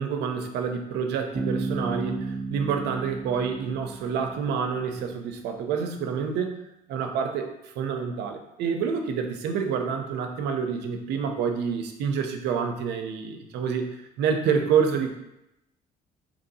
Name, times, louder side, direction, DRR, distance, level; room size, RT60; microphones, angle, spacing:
voice 1, 0.0-6.6 6.9-15.1, right 6 dB, 80° right, 5 dB, 0.5 m, -28 dB
Bass guitar, 1.3-5.1, right 3 dB, 10° left, 0.5 m, -33 dB
2.9 x 2.6 x 4.0 m, 0.87 s
cardioid pair, 110°, 17 cm